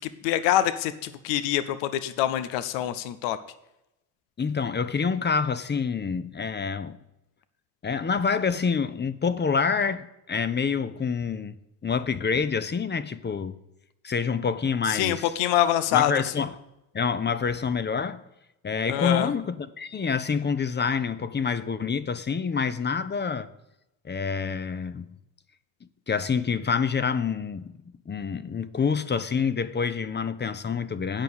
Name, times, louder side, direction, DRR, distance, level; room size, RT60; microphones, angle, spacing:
voice 1, 0.2-3.4 14.9-16.1 18.9-19.3, left 12 dB, 80° left, 0.8 m, -25 dB
voice 2, 4.4-7.0 7.8-11.6 11.8-13.6 14.0-15.3 15.9-16.5 16.9-18.2 18.6-23.5 24.0-25.1 26.1-27.7 28.1-31.2, left 5 dB, 25° left, 0.7 m, -27 dB
9.0 x 5.5 x 7.9 m
supercardioid pair, 65°, 43 cm